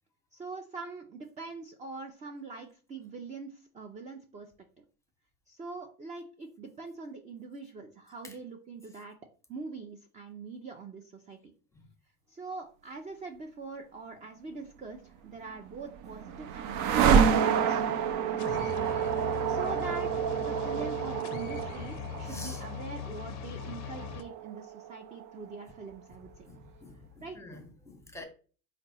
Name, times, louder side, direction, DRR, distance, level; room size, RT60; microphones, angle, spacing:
voice 1, 0.3-4.5 5.5-9.2 9.5-11.5 12.3-17.8 18.2-18.9 19.2-26.5 27.2-27.4, right 4 dB, 15° right, 0.4 m, -43 dB
sound 1, 15.5-25.6, right 7 dB, 60° right, 0.6 m, -29 dB
sound 2, 18.4-24.2, left 9 dB, 40° left, 0.5 m, -40 dB
voice 2, 22.2-22.6 26.5-27.0 27.3-28.2, left 2 dB, 5° left, 0.9 m, -46 dB
4.2 x 2.0 x 4.1 m
hypercardioid pair, 85°, 46 cm